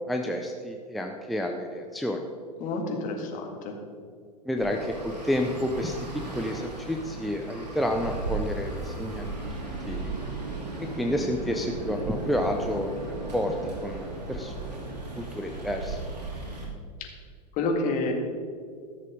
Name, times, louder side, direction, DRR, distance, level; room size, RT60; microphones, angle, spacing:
voice 1, 0.1-2.3 4.5-9.6 9.8-10.1 10.8-13.1 13.3-13.5 13.8-16.0, left 1 dB, ahead, 2 dB, 0.6 m, -30 dB
voice 2, 2.6-3.8 17.0-17.1 17.5-18.1, left 3 dB, 40° left, 2 dB, 2.0 m, -29 dB
Traffic noise roadway noise, 4.6-16.7, right 3 dB, 75° right, 2.8 m, -36 dB
14.0 x 6.7 x 5.1 m, 2.1 s
figure-of-eight pair, 90°, 21 cm